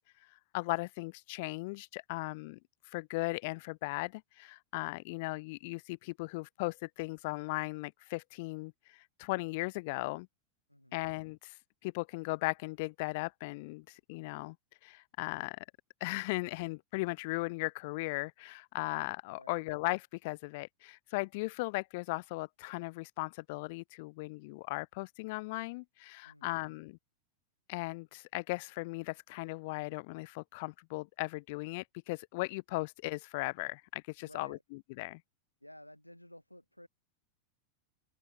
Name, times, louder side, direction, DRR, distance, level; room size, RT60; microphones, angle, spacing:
voice 1, 0.5-2.6 2.8-10.3 10.9-11.6 11.8-14.6 14.8-15.6 16.0-27.0 27.7-35.2, left 25 dB, 50° left, 0.5 m, -37 dB
voice 2, 10.7-11.1 19.4-19.7 26.2-26.7 34.2-34.6 35.6-36.9, left 1 dB, 90° left, 2.4 m, -54 dB
open air
figure-of-eight pair, 90°, 0 cm